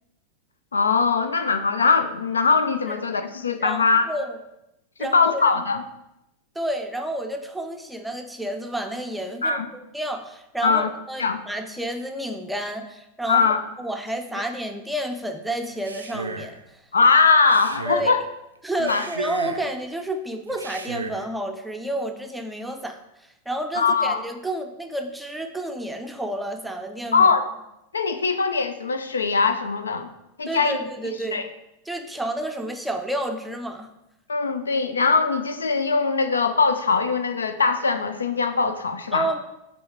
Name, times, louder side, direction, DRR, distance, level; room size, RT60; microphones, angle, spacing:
voice 1, 0.7-4.1 5.0-5.8 9.4-9.7 10.6-10.9 11.2-11.4 13.3-13.6 16.9-18.2 18.8-19.1 23.7-24.2 27.1-27.5 27.9-30.1 30.4-30.8 31.3-31.5 34.3-39.3, left 4 dB, 75° left, 8 dB, 0.5 m, -21 dB
voice 2, 3.6-4.4 5.0-5.6 6.6-16.8 17.9-18.2 18.6-23.0 23.5-27.3 30.5-31.4 31.9-33.9 39.1-39.4, right 1 dB, 5° right, 5 dB, 0.5 m, -30 dB
Male speech man speaking, 15.7-16.6 17.4-18.2 18.8-19.7 20.5-21.3, right 3 dB, 75° right, 0.4 m, -35 dB
6.3 x 3.5 x 4.5 m, 0.89 s
figure-of-eight pair, 90°, 0 cm